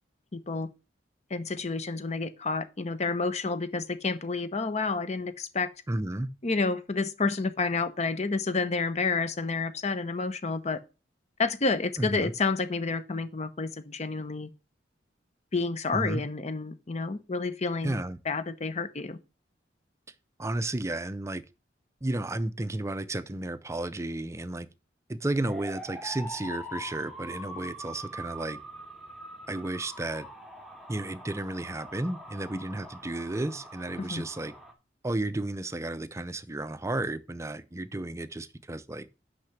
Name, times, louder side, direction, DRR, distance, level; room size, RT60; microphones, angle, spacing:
voice 1, 0.3-0.7 1.3-5.7 6.4-10.8 11.4-14.5 15.5-18.0 18.3-19.2 34.0-34.2, left 3 dB, 40° left, 0.8 m, -29 dB
voice 2, 5.9-6.3 12.0-12.3 15.9-16.2 17.8-18.2 20.4-21.4 22.0-24.7 25.1-28.6 29.5-30.3 30.9-34.5 35.0-39.1, right 2 dB, 15° right, 0.5 m, -33 dB
sound 1, 25.4-34.7, right 1 dB, ahead, 1.5 m, -43 dB
6.1 x 5.8 x 5.9 m
head